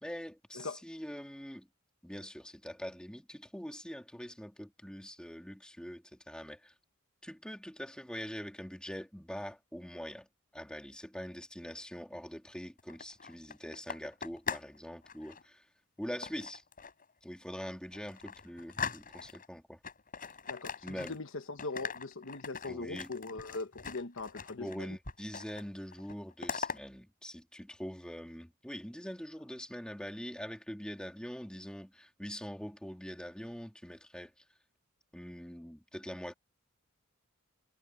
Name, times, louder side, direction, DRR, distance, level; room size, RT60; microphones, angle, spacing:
voice 1, 0.0-1.7 2.0-6.7 7.2-10.3 10.5-15.6 16.0-16.6 17.2-19.8 20.8-21.2 22.6-23.1 24.6-34.3 35.1-36.3, equal, 5° left, 3.3 m, -43 dB
sound 1, 12.8-14.8 15.0-15.4 16.2-17.0 17.5-17.6 17.9-19.5 19.8-21.3 21.6-24.8 25.1-25.7 25.9-26.8, left 6 dB, 40° left, 5.5 m, -41 dB
voice 2, 20.5-24.9, left 3 dB, 65° left, 1.2 m, -41 dB
head